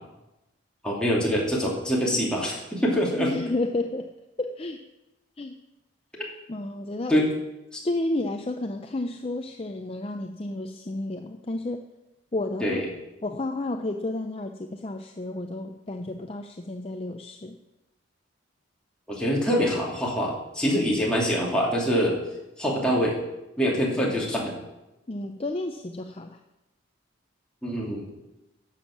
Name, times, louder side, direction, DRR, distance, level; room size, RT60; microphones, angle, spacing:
voice 1, 0.8-3.3 7.1-7.3 7.7-7.8 12.6-12.9 19.1-22.2 22.6-23.2 23.6-24.5 27.6-28.1, equal, 5° left, -4 dB, 2.6 m, -24 dB
voice 2, 3.2-4.1 4.4-4.8 5.4-5.6 6.5-7.2 7.8-11.8 12.3-12.8 13.2-17.6 25.1-26.4, left 2 dB, 30° left, 5 dB, 0.5 m, -31 dB
11.5 x 7.3 x 7.2 m, 0.96 s
head